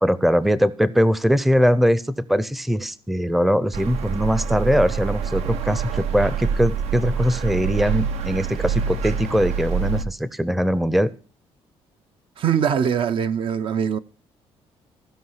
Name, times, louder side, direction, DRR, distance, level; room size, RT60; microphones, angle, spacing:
voice 1, 0.0-11.1, equal, ahead, 0.6 m, -21 dB
sound 1, 3.7-10.0, right 7 dB, 75° right, 0.9 m, -26 dB
voice 2, 12.4-14.0, right 8 dB, 55° right, 0.6 m, -22 dB
16.0 x 5.5 x 5.7 m
cardioid pair, 115°, 11 cm